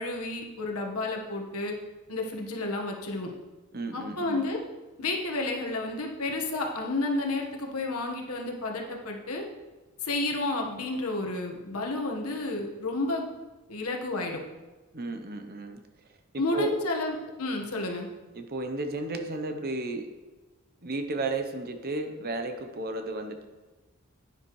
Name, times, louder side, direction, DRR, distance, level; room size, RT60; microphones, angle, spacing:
voice 1, 0.0-1.7 2.1-3.3 3.9-4.6 5.0-9.4 10.0-13.3 13.7-14.4 16.4-18.1, left 2 dB, 80° left, 1 dB, 1.5 m, -31 dB
voice 2, 3.7-4.4 14.9-15.8 16.5-16.7 18.3-20.1 20.8-23.4, right 2 dB, 45° right, 6 dB, 0.9 m, -33 dB
9.8 x 9.8 x 3.2 m, 1.2 s
head